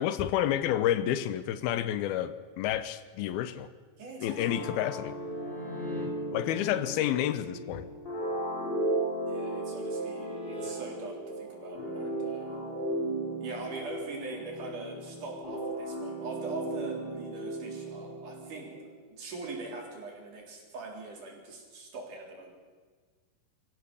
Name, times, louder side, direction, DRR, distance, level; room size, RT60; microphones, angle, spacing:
voice 1, 0.0-3.7 4.2-5.1 6.3-7.9, left 11 dB, 90° left, 2.8 m, -29 dB
voice 2, 4.0-4.7 9.3-12.6 13.4-22.5, right 3 dB, 60° right, 5.1 m, -42 dB
sound 1, 4.3-6.0 8.7-10.7 14.1-14.4, left 1 dB, 55° left, 9.5 m, -47 dB
sound 2, 4.4-18.9, right 1 dB, 15° left, 2.6 m, -36 dB
24.0 x 15.5 x 7.0 m
omnidirectional pair, 4.3 m